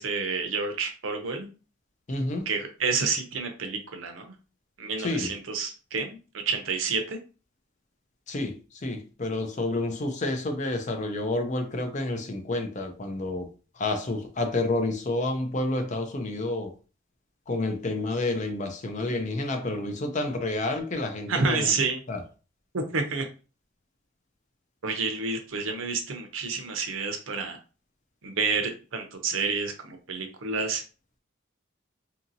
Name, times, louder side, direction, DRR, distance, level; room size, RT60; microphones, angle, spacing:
voice 1, 0.0-1.5 2.5-4.3 4.8-7.2 21.3-22.0 22.7-23.3 24.8-27.6 28.2-30.8, right 4 dB, 80° right, 0.7 m, -29 dB
voice 2, 2.1-2.5 5.0-5.3 8.3-13.5 13.7-16.7 17.5-21.7 22.1-22.2, left 2 dB, 35° left, 0.5 m, -29 dB
2.8 x 2.7 x 2.6 m
head